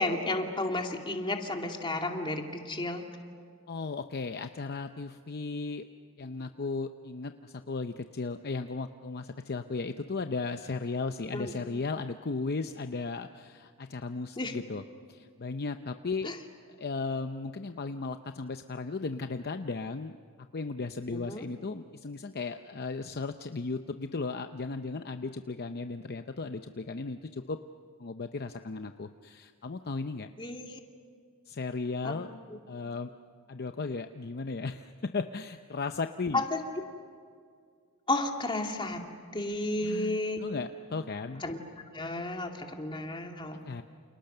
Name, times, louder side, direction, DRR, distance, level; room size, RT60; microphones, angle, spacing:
voice 1, 0.0-3.0 11.3-11.5 14.4-14.5 16.2-16.4 21.1-21.5 30.4-30.8 32.0-32.1 36.3-36.6 38.1-39.0 39.3-40.4 41.4-41.6 41.9-43.6, left 2 dB, 25° left, 2 dB, 2.4 m, -32 dB
voice 2, 3.7-5.9 6.2-14.8 15.1-16.3 16.8-20.2 20.5-27.6 28.0-30.3 31.5-32.3 32.7-33.1 33.5-36.4 39.8-41.4 43.6-43.8, left 4 dB, 45° left, 8 dB, 0.7 m, -36 dB
29.5 x 28.5 x 6.7 m, 2.1 s
head